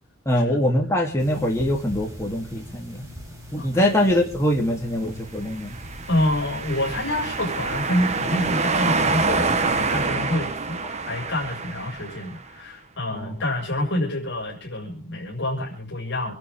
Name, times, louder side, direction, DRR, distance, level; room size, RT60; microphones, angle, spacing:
voice 1, 0.2-3.1 3.5-5.7 13.1-13.4, left 1 dB, 15° left, -1 dB, 3.4 m, -23 dB
sound 1, 1.2-10.1, equal, 15° right, 6.8 m, -41 dB
voice 2, 3.6-3.9 6.1-10.8 11.1-16.3, left 1 dB, 55° left, -2 dB, 6.7 m, -27 dB
sound 2, 5.6-12.4, right 4 dB, 30° right, 1.2 m, -26 dB
27.5 x 12.0 x 3.8 m, 0.37 s
head